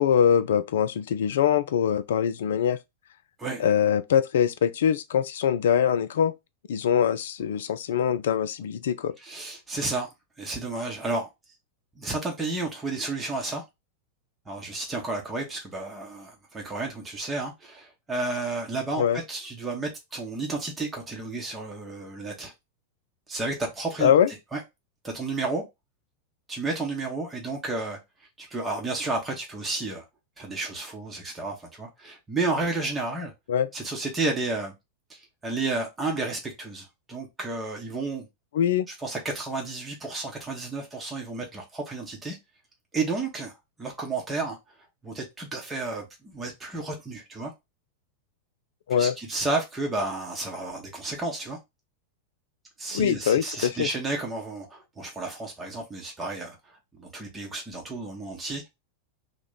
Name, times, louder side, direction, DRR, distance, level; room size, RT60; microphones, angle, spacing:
voice 1, 0.0-2.8 3.6-6.3 6.7-9.1 19.0-19.2 24.0-24.3 33.5-33.7 38.5-38.9 48.9-49.1 52.9-53.9, left 8 dB, 60° left, 0.3 m, -23 dB
voice 2, 9.2-10.1 10.4-11.3 12.0-13.6 14.5-22.5 23.3-24.1 24.5-24.6 25.0-25.6 26.5-28.0 28.4-30.0 30.4-33.3 33.7-34.7 35.1-38.3 39.0-42.4 42.9-44.6 45.0-47.5 48.9-51.6 52.8-56.6 56.9-58.7, right 3 dB, 15° right, 0.9 m, -32 dB
3.0 x 2.2 x 3.7 m
figure-of-eight pair, 90°, 0 cm